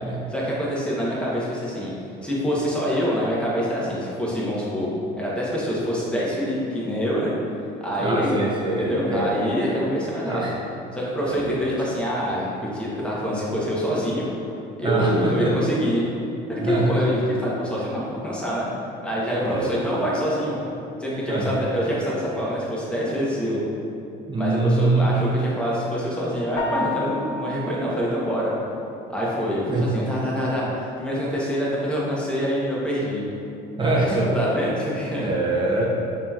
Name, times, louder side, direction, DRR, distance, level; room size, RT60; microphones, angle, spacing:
voice 1, 0.3-1.9 2.2-4.9 5.2-7.3 7.8-8.4 8.8-10.4 10.9-14.3 14.8-16.0 16.5-18.7 19.0-20.6 21.0-23.6 24.4-28.5 29.1-33.2 33.8-35.3, equal, 5° left, -6 dB, 0.8 m, -25 dB
voice 2, 8.0-9.3 10.3-10.6 11.2-11.6 14.8-15.6 16.5-17.0 19.4-19.7 21.3-21.6 24.3-25.2 29.7-29.9 33.8-34.3 35.2-35.9, right 2 dB, 25° right, -4 dB, 0.5 m, -24 dB
sound 1, 26.6-27.6, left 4 dB, 30° left, 0.5 m, -29 dB
5.0 x 2.8 x 2.3 m, 2.7 s
cardioid pair, 115°, 19 cm